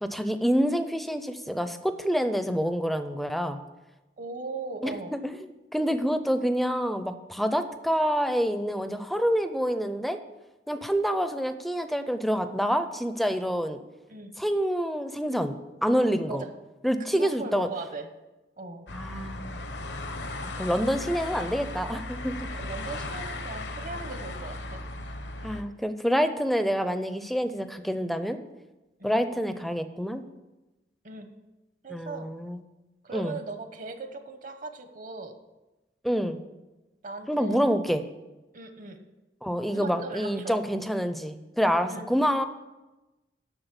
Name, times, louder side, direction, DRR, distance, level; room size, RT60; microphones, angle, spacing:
voice 1, 0.0-3.6 4.8-5.4 5.7-10.2 10.7-13.8 14.4-16.4 16.8-17.7 18.9-19.6 20.6-22.5 25.4-28.4 29.0-30.3 31.9-32.6 33.1-33.3 36.0-36.4 37.3-38.0 39.4-42.4, equal, ahead, 10 dB, 0.5 m, -27 dB
voice 2, 4.2-5.1 14.1-14.3 16.3-16.5 17.1-18.1 18.6-18.9 22.6-24.8 29.0-29.2 31.0-31.3 31.8-32.3 33.0-35.4 37.0-37.7 38.5-39.0 39.7-40.6 41.9-42.1, right 3 dB, 50° right, 7 dB, 1.1 m, -38 dB
sound 1, 18.9-25.6, left 2 dB, 70° left, 0.9 m, -36 dB
8.0 x 6.4 x 8.1 m, 1.1 s
head